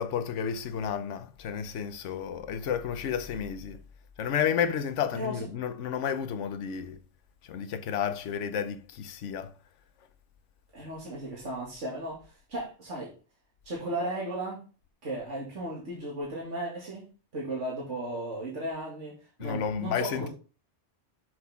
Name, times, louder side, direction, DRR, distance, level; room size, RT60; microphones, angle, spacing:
voice 1, 0.0-3.8 4.2-7.0 7.4-9.5 19.4-20.3, left 8 dB, 80° left, 1.1 m, -31 dB
voice 2, 10.7-12.2 12.5-13.1 13.6-14.6 15.0-17.1 17.3-20.3, right 1 dB, 75° right, 2.6 m, -35 dB
7.8 x 6.5 x 3.6 m
omnidirectional pair, 1.2 m